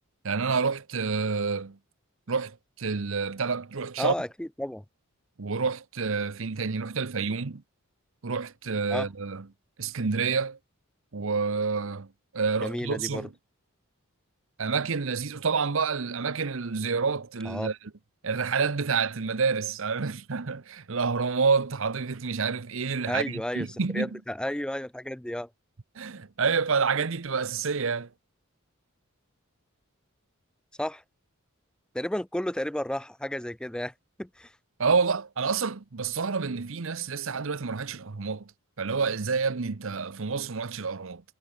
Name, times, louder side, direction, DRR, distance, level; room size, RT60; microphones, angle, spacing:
voice 1, 0.2-1.8 2.3-4.1 5.4-7.6 8.2-9.4 9.8-10.6 11.1-12.1 12.3-13.3 14.6-17.8 18.2-24.1 26.0-28.1 34.8-38.5 38.8-41.2, right 5 dB, 60° right, 0.8 m, -28 dB
voice 2, 4.0-4.8 8.9-9.1 12.6-13.3 17.4-17.7 23.1-25.5 30.8-31.0 31.9-33.9 34.2-34.5, left 1 dB, 5° left, 0.4 m, -32 dB
head